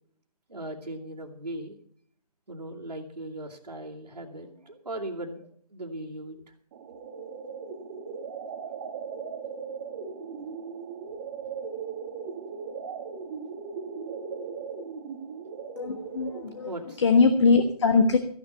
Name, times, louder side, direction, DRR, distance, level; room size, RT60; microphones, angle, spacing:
voice 1, 0.5-1.8 2.5-6.4 16.6-17.0, right 1 dB, 90° right, -6 dB, 2.7 m, -38 dB
sound 1, 6.7-16.7, right 6 dB, 25° right, 1.4 m, -38 dB
voice 2, 15.8-16.7 17.0-18.2, left 4 dB, 45° left, 8 dB, 1.3 m, -21 dB
14.5 x 11.0 x 5.7 m, 0.62 s
figure-of-eight pair, 150°, 20 cm